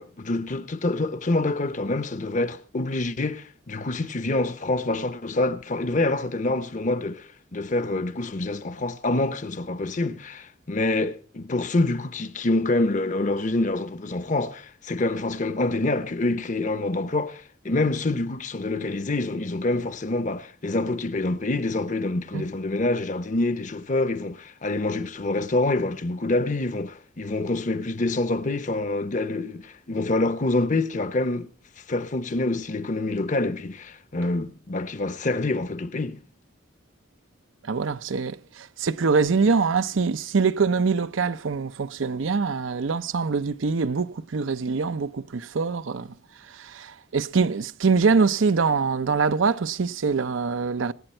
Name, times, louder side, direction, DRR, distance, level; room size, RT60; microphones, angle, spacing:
voice 1, 0.0-31.5 31.9-36.2, left 2 dB, 40° left, 0.8 m, -26 dB
voice 2, 37.6-46.1 46.6-50.9, right 5 dB, 80° right, 0.6 m, -24 dB
24.0 x 9.0 x 4.4 m
head